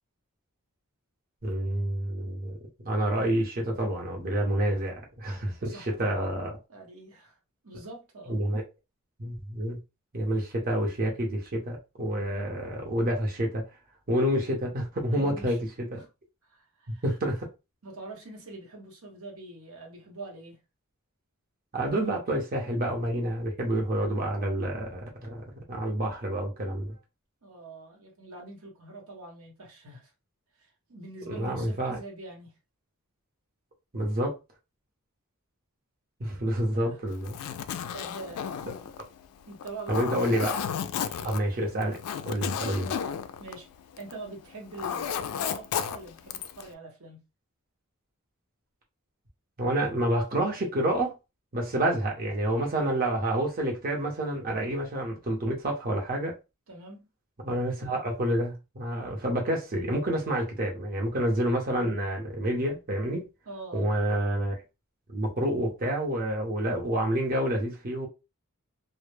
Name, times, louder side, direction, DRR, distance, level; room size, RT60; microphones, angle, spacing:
voice 1, 1.4-2.6 2.8-6.5 8.3-8.6 9.2-9.8 10.1-13.6 14.1-16.1 16.9-17.5 21.7-26.9 31.3-32.0 33.9-34.4 36.2-37.3 39.9-40.6 41.2-42.0 42.2-42.9 49.6-51.2 51.5-56.4 57.4-63.3 63.7-64.6 65.1-68.1, right 1 dB, 40° right, 0.7 m, -28 dB
voice 2, 5.6-6.4 6.7-7.4 7.6-8.4 15.1-15.6 16.0-16.1 16.4-17.0 17.8-20.6 21.8-22.2 26.9-27.0 27.4-30.1 30.6-32.5 36.7-37.0 37.9-38.5 39.5-40.2 41.0-41.4 43.4-43.7 44.0-47.2 56.7-57.1 63.5-63.9, right 2 dB, 75° right, 0.9 m, -44 dB
Zipper (clothing), 37.1-44.2 44.5-46.7, left 8 dB, 85° left, 0.3 m, -33 dB
2.1 x 2.0 x 3.1 m
head